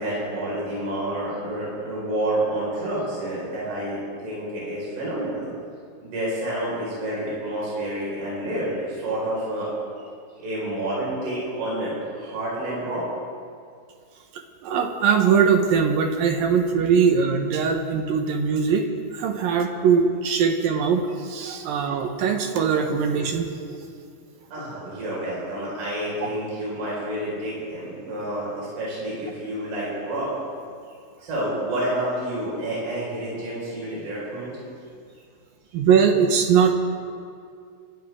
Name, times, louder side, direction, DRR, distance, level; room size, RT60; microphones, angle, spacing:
voice 1, 0.0-5.5 6.0-10.0 10.4-13.0 19.7-19.9 24.5-30.3 31.2-34.5, right 1 dB, 55° right, -6 dB, 6.8 m, -29 dB
voice 2, 14.6-18.8 19.1-23.8 35.7-36.7, right 6 dB, 75° right, 4 dB, 2.1 m, -21 dB
29.5 x 13.0 x 3.7 m, 2.3 s
omnidirectional pair, 5.5 m